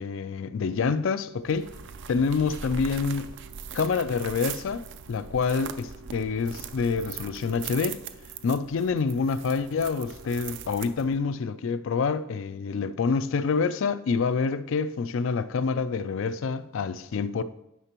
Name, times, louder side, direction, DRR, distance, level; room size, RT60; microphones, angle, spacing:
voice 1, 0.0-1.7 2.1-3.4 3.7-8.0 8.4-17.4, left 5 dB, 60° left, 0.4 m, -27 dB
sound 1, 1.4-11.3, right 7 dB, 55° right, 0.4 m, -40 dB
10.0 x 5.8 x 3.0 m
head